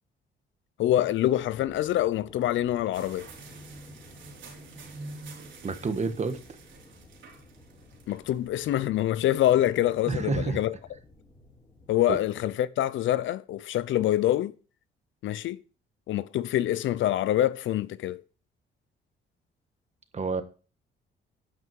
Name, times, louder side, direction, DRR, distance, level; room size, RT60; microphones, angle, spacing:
voice 1, 0.8-3.3 8.1-10.7 11.9-14.5 15.2-15.6 16.1-18.2, left 13 dB, 75° left, 0.6 m, -25 dB
sound 1, 1.3-12.2, left 2 dB, 20° left, 4.8 m, -54 dB
sound 2, 2.9-8.5, right 3 dB, 75° right, 4.1 m, -47 dB
voice 2, 5.6-6.4 10.1-10.6 12.1-12.2 20.1-20.4, right 4 dB, 35° right, 1.4 m, -28 dB
11.0 x 6.0 x 4.6 m
cardioid pair, 90°, 20 cm